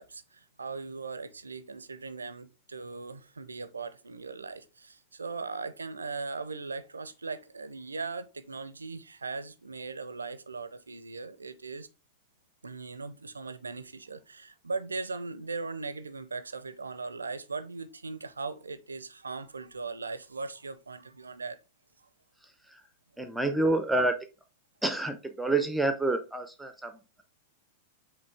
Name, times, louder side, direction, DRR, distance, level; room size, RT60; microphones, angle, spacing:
voice 1, 0.0-11.9 12.6-21.6, right 4 dB, 85° right, 0.4 m, -39 dB
voice 2, 23.2-24.3 24.8-27.2, right 2 dB, 5° right, 0.5 m, -28 dB
5.1 x 3.1 x 3.3 m
figure-of-eight pair, 95°, 0 cm